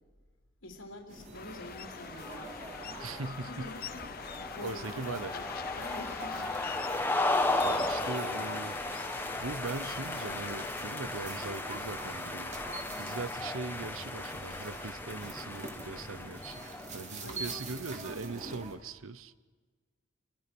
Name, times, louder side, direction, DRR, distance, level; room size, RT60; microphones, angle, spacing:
voice 1, 0.6-2.7 3.5-4.8 5.1-5.5 5.7-6.5 17.2-17.5, left 1 dB, 75° left, 1 dB, 3.3 m, -46 dB
sound 1, 1.1-18.8, right 2 dB, 35° right, 2.9 m, -46 dB
sound 2, 1.3-10.7, left 8 dB, 50° left, 0.7 m, -44 dB
sound 3, 1.6-17.3, left 2 dB, 10° left, 1.6 m, -36 dB
voice 2, 3.0-3.7 4.6-5.3 7.6-8.7 9.4-12.5 13.0-16.7 16.9-19.3, right 3 dB, 90° right, 16 dB, 0.9 m, -40 dB
29.5 x 23.0 x 6.2 m, 1.4 s
head